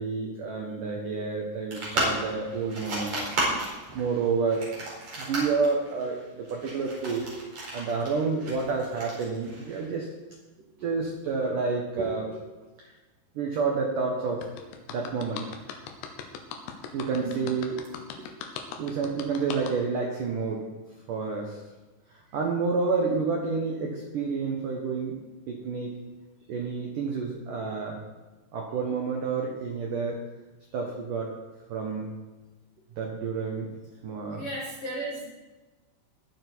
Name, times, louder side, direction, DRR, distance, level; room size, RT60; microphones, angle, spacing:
voice 1, 0.0-3.4 3.9-4.7 5.2-7.3 7.7-10.1 10.8-12.4 12.8-12.9 13.4-14.5 14.9-15.4 16.9-17.8 18.8-20.6 21.1-21.6 22.3-25.2 25.5-25.9 26.5-28.0 28.5-30.2 30.7-31.3 31.7-32.1 33.0-33.7 34.0-34.4, right 4 dB, 75° right, 0 dB, 1.9 m, -29 dB
sound 1, 1.7-9.9, right 2 dB, 35° right, 5.5 m, -33 dB
sound 2, 14.4-19.7, left 7 dB, 80° left, 3.7 m, -38 dB
voice 2, 33.5-34.0 34.3-35.3, right 2 dB, 60° left, -4 dB, 1.4 m, -36 dB
21.0 x 7.6 x 4.7 m, 1.2 s
omnidirectional pair, 5.9 m